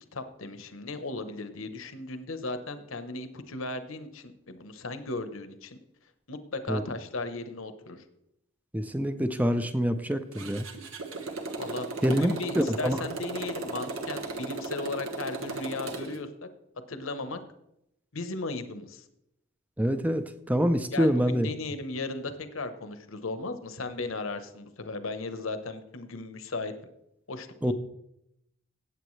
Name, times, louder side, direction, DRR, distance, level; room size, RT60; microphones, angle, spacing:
voice 1, 0.1-5.8 6.3-8.0 11.6-16.5 16.9-17.4 18.1-19.0 20.9-26.7 27.3-27.7, left 3 dB, 75° left, 10 dB, 1.0 m, -36 dB
voice 2, 8.7-10.7 12.0-13.0 19.8-21.5 27.6-27.7, equal, 5° right, 10 dB, 0.5 m, -26 dB
Motorcycle, 10.3-16.2, right 3 dB, 80° right, 1.5 m, -36 dB
16.5 x 8.1 x 3.2 m, 0.82 s
head